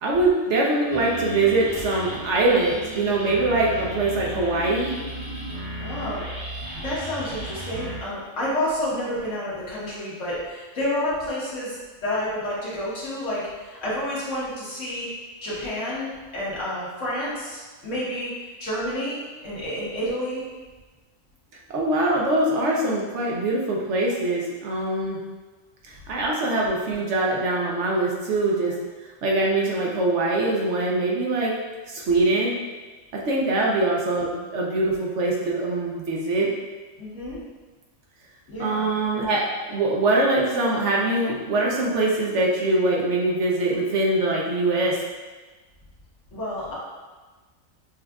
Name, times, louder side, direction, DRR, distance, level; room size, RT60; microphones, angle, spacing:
voice 1, 0.0-4.9 21.7-25.2 25.9-28.7 29.2-31.5 31.8-32.5 33.1-36.5 38.6-45.0, right 2 dB, 65° right, -2 dB, 0.8 m, -23 dB
sound 1, 0.9-8.0, right 1 dB, 85° right, 1.5 m, -34 dB
voice 2, 5.8-6.2 6.8-15.1 15.4-18.3 18.6-20.4 33.5-33.6 37.0-37.4 38.5-38.9 46.3-46.7, left 1 dB, 65° left, -8 dB, 1.5 m, -29 dB
6.0 x 2.4 x 2.3 m, 1.3 s
omnidirectional pair, 1.4 m